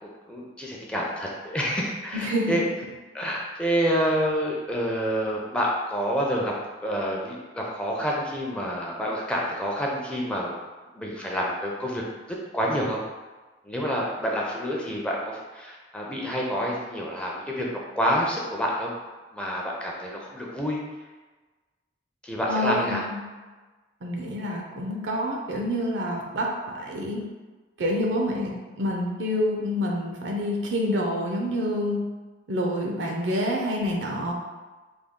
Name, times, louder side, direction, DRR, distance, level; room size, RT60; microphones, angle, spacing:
voice 1, 0.0-2.6 3.1-6.5 6.8-10.6 11.0-12.0 12.3-13.0 13.6-17.7 18.0-18.9 19.3-20.8 22.2-23.0, equal, 5° left, -3 dB, 0.4 m, -28 dB
voice 2, 2.1-2.6 22.5-23.2 24.0-26.5 26.8-27.2 27.8-32.0 32.5-34.3, equal, 85° right, 0 dB, 0.6 m, -27 dB
3.5 x 2.3 x 3.6 m, 1.3 s
head